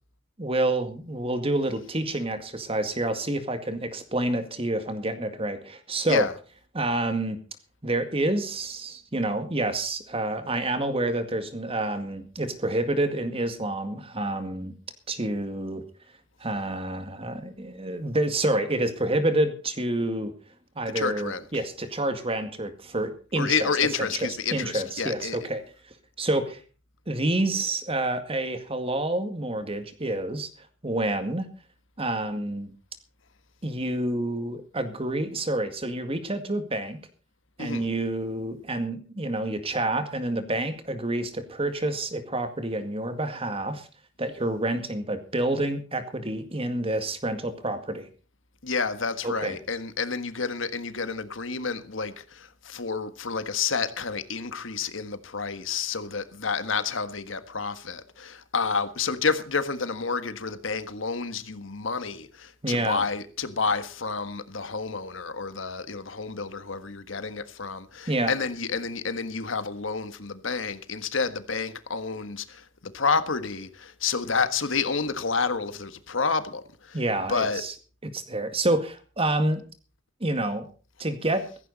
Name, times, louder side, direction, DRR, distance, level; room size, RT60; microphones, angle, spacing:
voice 1, 0.4-6.3 6.7-7.4 7.8-14.7 15.1-15.8 16.4-20.3 20.8-23.7 24.0-24.1 24.5-25.6 26.2-26.6 27.1-31.5 32.0-32.7 33.6-37.0 37.6-43.9 44.2-48.1 49.2-49.6 62.6-63.0 68.1-68.3 76.9-77.7 78.1-79.6 80.2-80.7 81.0-81.5, right 1 dB, 30° right, 2.0 m, -28 dB
voice 2, 20.9-21.4 23.4-25.4 37.6-37.9 48.6-77.0 77.3-77.6, left 5 dB, 75° left, 1.5 m, -29 dB
16.0 x 15.0 x 4.1 m
head